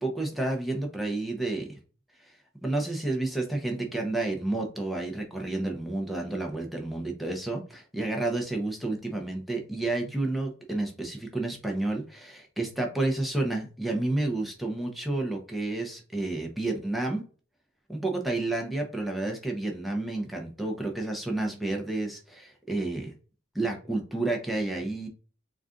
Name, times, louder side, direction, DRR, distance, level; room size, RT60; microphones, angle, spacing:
voice 1, 0.0-1.7 2.2-2.4 2.6-17.2 17.9-23.1 23.5-25.1, right 2 dB, ahead, 1 dB, 0.7 m, -30 dB
4.0 x 2.5 x 3.7 m, 0.38 s
head